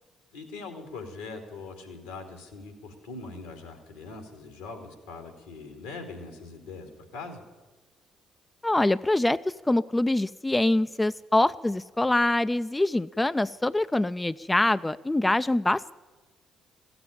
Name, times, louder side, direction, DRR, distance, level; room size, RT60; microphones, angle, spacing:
voice 1, 0.3-7.4, left 3 dB, 85° left, 5 dB, 2.3 m, -41 dB
voice 2, 8.6-9.4 9.7-16.0, left 1 dB, 15° left, 14 dB, 0.4 m, -24 dB
15.5 x 7.9 x 9.9 m, 1.2 s
hypercardioid pair, 50°, 0 cm